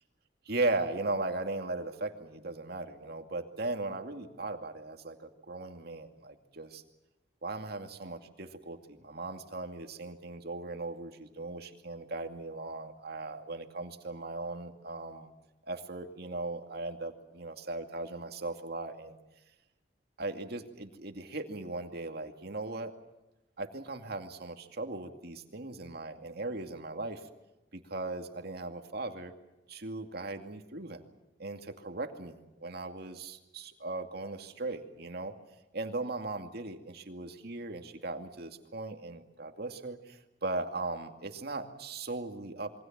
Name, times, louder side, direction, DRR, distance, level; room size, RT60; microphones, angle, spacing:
voice 1, 0.5-6.8 7.4-15.3 15.6-19.2 20.2-22.9 23.6-27.2 27.7-29.3 29.7-31.0 31.4-35.3 35.7-42.8, right 2 dB, 60° right, 5 dB, 2.4 m, -38 dB
27.5 x 23.0 x 7.4 m, 1.0 s
head